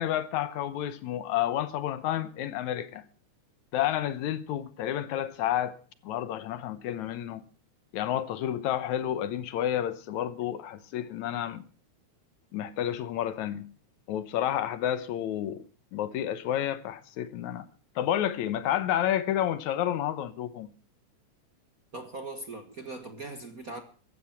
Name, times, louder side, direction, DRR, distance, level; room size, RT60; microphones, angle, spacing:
voice 1, 0.0-3.1 3.7-5.8 6.0-7.4 7.9-11.6 12.5-13.7 14.1-15.6 15.9-17.7 18.0-20.7, left 11 dB, 75° left, 2.2 m, -30 dB
voice 2, 21.9-23.8, right 2 dB, 40° right, 1.4 m, -40 dB
15.0 x 13.0 x 5.8 m
omnidirectional pair, 3.5 m